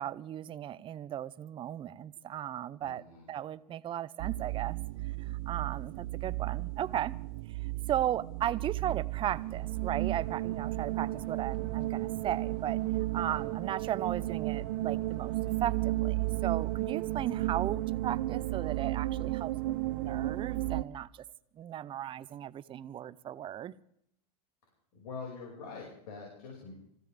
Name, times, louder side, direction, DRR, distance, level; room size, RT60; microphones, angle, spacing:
voice 1, 0.0-4.8 5.5-7.2 7.9-12.8 13.1-15.3 15.6-21.2 21.6-23.8, right 11 dB, 25° right, 0.6 m, -36 dB
voice 2, 2.8-3.3 13.2-13.4 24.9-26.7, left 4 dB, 70° left, 5.6 m, -44 dB
sound 1, 4.2-20.8, right 18 dB, 60° right, 0.7 m, -33 dB
sound 2, 9.3-17.7, left 6 dB, 85° left, 1.7 m, -56 dB
25.5 x 15.5 x 3.4 m
hypercardioid pair, 120°, 20 cm